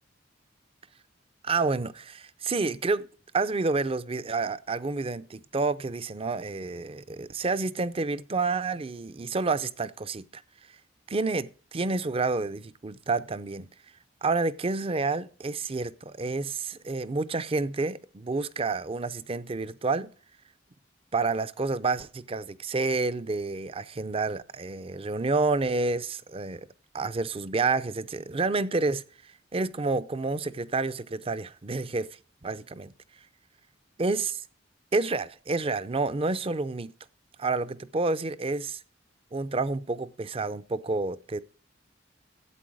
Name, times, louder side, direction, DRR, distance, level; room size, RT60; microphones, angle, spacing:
voice 1, 1.4-3.1 3.3-10.4 11.1-13.7 14.2-20.1 21.1-26.7 26.9-29.0 29.5-32.1 32.4-32.9 34.0-34.4 34.9-36.9 37.4-38.8 39.3-41.4, right 3 dB, 30° right, 0.6 m, -29 dB
12.5 x 8.3 x 4.8 m
head